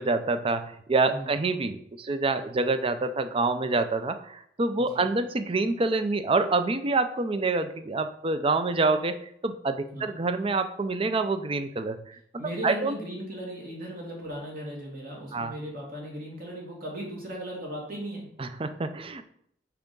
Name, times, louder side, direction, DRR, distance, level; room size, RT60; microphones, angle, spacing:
voice 1, 0.0-13.0 15.3-15.6 18.4-19.2, right 3 dB, 30° right, 10 dB, 0.5 m, -27 dB
voice 2, 12.4-18.3, right 1 dB, 55° right, -2 dB, 2.4 m, -37 dB
5.8 x 4.8 x 5.3 m, 0.68 s
head